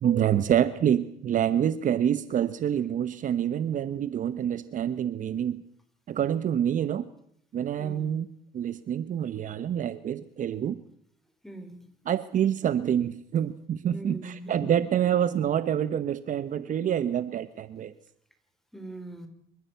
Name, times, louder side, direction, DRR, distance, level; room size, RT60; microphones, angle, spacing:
voice 1, 0.0-5.6 6.1-7.1 7.5-8.3 8.5-10.8 12.1-17.9, right 9 dB, 50° right, 14 dB, 1.0 m, -27 dB
voice 2, 7.8-8.2 11.4-11.8 13.9-14.9 18.7-19.3, right 1 dB, ahead, 7 dB, 4.5 m, -41 dB
27.0 x 14.5 x 8.1 m, 0.71 s
cardioid pair, 110°, 17 cm